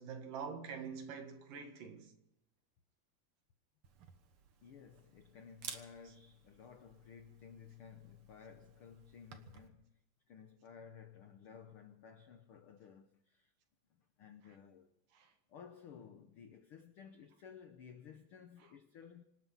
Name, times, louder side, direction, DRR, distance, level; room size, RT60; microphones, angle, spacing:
voice 1, 0.0-2.2 15.1-15.3 18.6-18.7, right 6 dB, 80° right, 3.4 m, -46 dB
Camera, 3.8-9.7, right 7 dB, 55° right, 1.7 m, -55 dB
voice 2, 4.6-10.0 10.3-13.5 14.2-14.9 15.5-19.2, left 7 dB, 90° left, 1.2 m, -55 dB
26.0 x 9.7 x 5.7 m
omnidirectional pair, 3.8 m